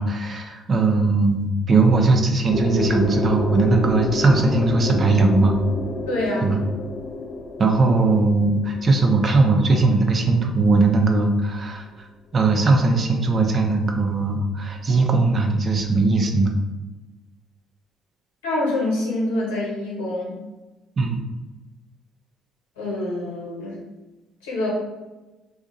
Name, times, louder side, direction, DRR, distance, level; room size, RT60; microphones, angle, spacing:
voice 1, 0.0-5.6 6.4-6.6 7.6-12.1 12.3-16.5 21.0-21.2, right 3 dB, 40° right, 3 dB, 0.6 m, -19 dB
sound 1, 2.5-10.3, left 2 dB, 50° left, 0.6 m, -29 dB
voice 2, 6.1-6.5 18.4-20.3 22.8-23.7 24.4-24.7, left 1 dB, 85° left, -5 dB, 1.1 m, -25 dB
2.7 x 2.4 x 3.9 m, 1.1 s
hypercardioid pair, 55°, 0 cm